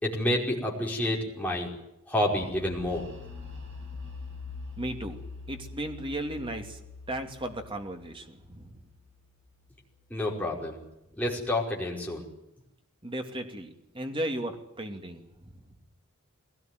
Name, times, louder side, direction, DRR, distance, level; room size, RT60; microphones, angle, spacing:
voice 1, 0.0-1.7 2.1-3.1 10.1-10.8 11.2-12.3, left 1 dB, 5° left, -2 dB, 5.1 m, -29 dB
sound 1, 2.3-10.0, left 4 dB, 60° right, 8.0 m, -44 dB
voice 2, 4.8-5.2 5.5-6.8 7.1-8.8 13.0-15.7, right 1 dB, 25° right, 5 dB, 2.7 m, -36 dB
21.5 x 18.0 x 9.4 m, 0.87 s
head